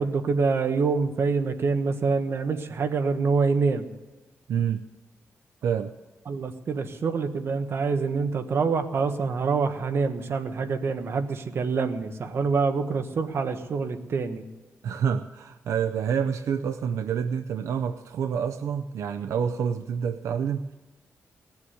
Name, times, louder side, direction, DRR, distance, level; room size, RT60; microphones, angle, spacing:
voice 1, 0.0-3.9 6.3-14.4, right 4 dB, 55° right, 7 dB, 1.3 m, -26 dB
voice 2, 4.5-4.8 5.6-5.9 14.8-20.8, right 7 dB, 90° right, 8 dB, 0.6 m, -28 dB
18.5 x 7.3 x 9.7 m, 1.2 s
wide cardioid pair, 120°, 5 cm